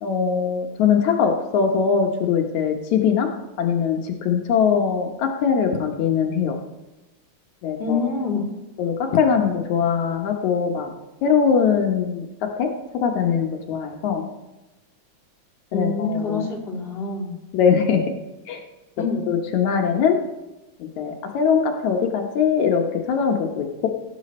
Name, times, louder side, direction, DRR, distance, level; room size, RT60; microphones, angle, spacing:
voice 1, 0.0-3.3 3.6-6.6 7.6-8.0 8.8-10.9 11.2-12.7 13.0-14.3 15.7-16.4 17.5-18.0 18.5-18.6 19.3-20.2 21.0-23.9, left 6 dB, 75° left, 2 dB, 2.4 m, -21 dB
voice 2, 7.8-8.5 15.7-17.3 19.0-19.2, left 4 dB, 20° left, -2 dB, 2.6 m, -26 dB
17.0 x 9.4 x 4.2 m, 1.0 s
omnidirectional pair, 3.4 m